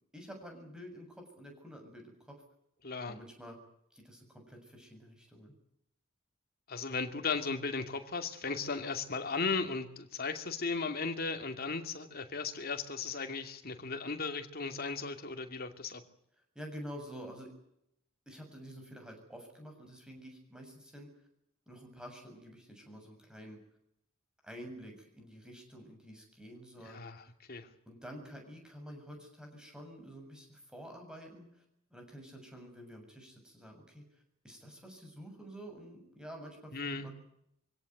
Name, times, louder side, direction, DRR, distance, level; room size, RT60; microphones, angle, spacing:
voice 1, 0.1-2.4 3.0-3.6 3.9-5.6 16.6-17.5 18.3-21.1 21.7-23.6 24.4-27.0 27.9-31.6 31.9-37.1, equal, 5° right, 3 dB, 7.1 m, -49 dB
voice 2, 2.8-3.2 6.7-16.0 26.8-27.2 27.5-27.7 36.7-37.1, left 4 dB, 45° left, 6 dB, 2.6 m, -36 dB
25.0 x 17.0 x 9.4 m, 0.75 s
head